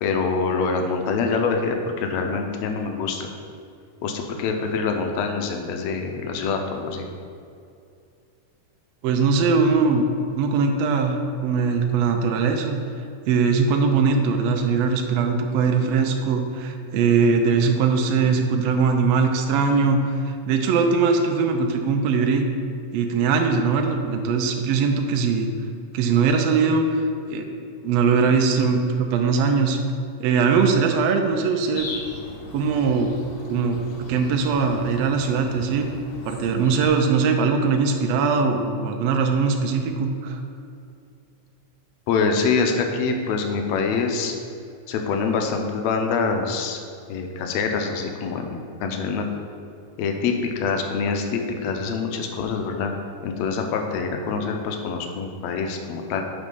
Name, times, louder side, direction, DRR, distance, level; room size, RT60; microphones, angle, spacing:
voice 1, 0.0-3.3 4.0-7.1 42.1-44.3 44.9-46.8 47.1-49.2 50.0-52.9 53.2-56.2, left 5 dB, 75° left, 4 dB, 1.8 m, -25 dB
voice 2, 9.0-10.1 10.3-12.8 13.3-22.4 22.9-25.5 25.9-27.0 27.3-27.5 27.8-29.8 30.2-31.9 32.5-33.1 33.5-33.8 34.1-35.9 36.2-40.4, right 5 dB, 80° right, 4 dB, 1.4 m, -21 dB
sound 1, 31.7-36.9, left 2 dB, 45° left, 1.3 m, -38 dB
7.2 x 4.2 x 5.3 m, 2.5 s
omnidirectional pair, 3.5 m